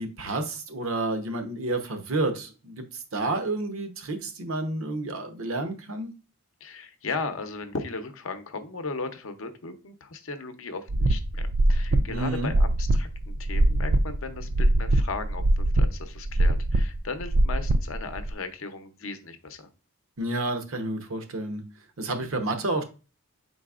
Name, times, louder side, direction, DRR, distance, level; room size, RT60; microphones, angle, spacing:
voice 1, 0.0-6.1 12.1-12.5 20.2-21.6 22.0-22.8, right 2 dB, 65° right, 6 dB, 0.8 m, -30 dB
voice 2, 6.6-19.7, left 4 dB, 65° left, 8 dB, 0.6 m, -36 dB
sound 1, 10.9-18.3, right 1 dB, 45° right, 0.3 m, -23 dB
5.7 x 4.0 x 2.4 m, 0.33 s
head